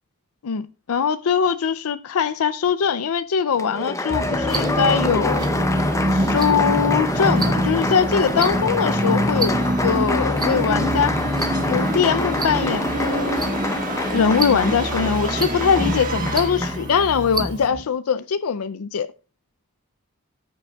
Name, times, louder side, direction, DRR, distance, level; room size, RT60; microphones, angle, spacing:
voice 1, 0.4-5.4 6.1-11.1 11.7-13.5 14.1-19.1, left 6 dB, 80° left, 0.5 m, -22 dB
Applause, 3.6-16.8, left 2 dB, 15° left, 0.6 m, -27 dB
Musical instrument, 4.1-17.8, equal, 40° right, 1.6 m, -25 dB
sound 1, 4.5-17.7, right 2 dB, 20° right, 1.4 m, -33 dB
17.0 x 6.9 x 2.3 m
head